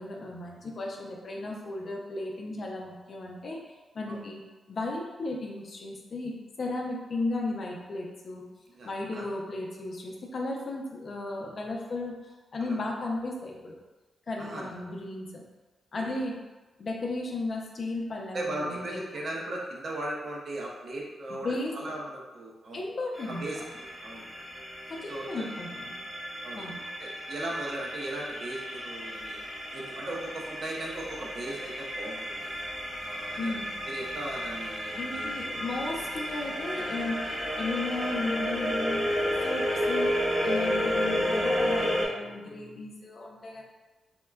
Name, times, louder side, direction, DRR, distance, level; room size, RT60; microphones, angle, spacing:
voice 1, 0.0-3.6 3.9-4.4 4.7-8.4 8.8-13.8 14.3-15.4 15.9-16.4 16.8-19.0 21.3-21.9 22.7-23.4 24.9-25.9 26.5-26.8 33.4-33.7 34.9-39.0 39.4-40.1 40.4-43.6, left 2 dB, 55° left, 0 dB, 0.5 m, -35 dB
voice 2, 8.7-9.3 12.6-12.8 14.4-14.8 16.0-16.1 18.3-22.8 23.3-23.6 24.0-24.3 25.1-25.4 26.4-26.7 27.0-29.4 29.7-32.5 33.0-33.6 33.8-35.3 40.8-40.9, right 1 dB, 60° right, -2 dB, 0.6 m, -37 dB
sound 1, 23.2-42.1, equal, 5° right, 0.7 m, -32 dB
3.5 x 2.1 x 2.2 m, 1.2 s
cardioid pair, 65°, 0 cm